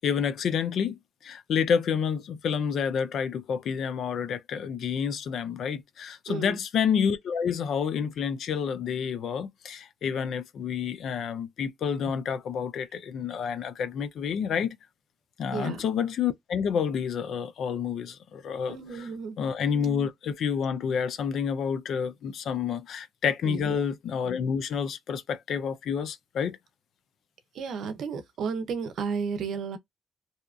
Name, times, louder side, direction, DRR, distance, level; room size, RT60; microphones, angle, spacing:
voice 1, 0.0-14.8 15.4-19.1 19.4-26.6, left 7 dB, 65° left, 0.4 m, -29 dB
voice 2, 6.3-6.6 15.5-15.8 18.7-19.4 23.4-23.8 27.5-29.8, right 5 dB, 70° right, 0.6 m, -33 dB
2.7 x 2.3 x 2.3 m
cardioid pair, 110°, 0 cm